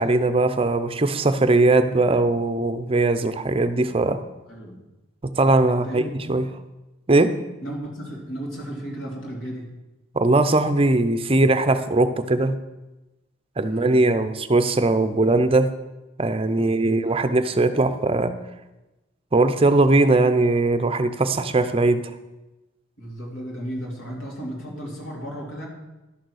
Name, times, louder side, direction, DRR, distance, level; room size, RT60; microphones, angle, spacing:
voice 1, 0.0-4.2 5.2-6.0 6.3-6.4 7.1-7.3 10.1-12.5 13.6-15.7 16.2-18.4 19.3-22.0, right 2 dB, 25° right, 11 dB, 0.6 m, -20 dB
voice 2, 4.5-4.8 5.7-6.1 7.6-9.8 13.6-13.9 16.5-17.2 23.0-25.7, right 1 dB, 70° left, -1 dB, 2.9 m, -34 dB
11.5 x 6.6 x 6.4 m, 1.0 s
head